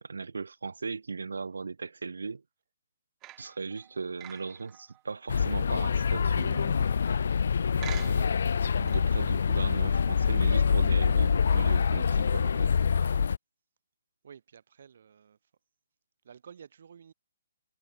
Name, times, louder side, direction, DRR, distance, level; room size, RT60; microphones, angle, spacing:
voice 1, 0.0-2.4 3.4-6.9 7.8-8.3 8.8-13.0, right 4 dB, 80° right, 0.3 m, -38 dB
sound 1, 3.2-7.4 7.8-8.5 8.9-9.0, right 18 dB, 25° right, 2.3 m, -48 dB
sound 2, 5.3-13.4, left 6 dB, 65° left, 0.3 m, -25 dB
voice 2, 14.2-15.5 16.2-17.1, right 7 dB, 60° right, 3.0 m, -52 dB
figure-of-eight pair, 135°, 0 cm